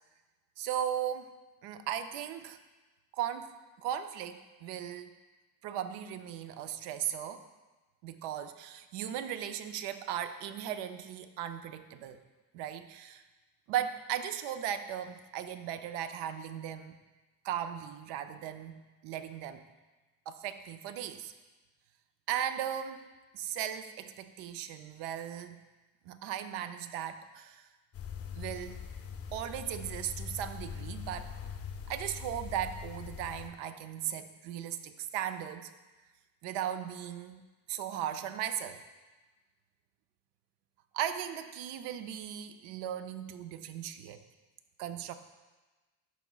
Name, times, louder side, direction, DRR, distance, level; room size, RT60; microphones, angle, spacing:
voice 1, 0.6-1.3 1.6-2.6 3.1-5.1 5.6-7.4 8.0-12.2 12.5-13.2 13.7-17.0 17.4-19.6 20.3-21.3 22.3-23.0 23.3-25.6 26.1-27.6 28.4-28.8 29.3-31.3 31.9-35.7 36.4-38.8 40.9-44.2 44.8-45.2, right 10 dB, 80° right, 10 dB, 0.6 m, -37 dB
sound 1, 27.9-33.5, left 6 dB, 35° left, 0.5 m, -42 dB
11.0 x 4.0 x 2.3 m, 1.2 s
cardioid pair, 115°, 41 cm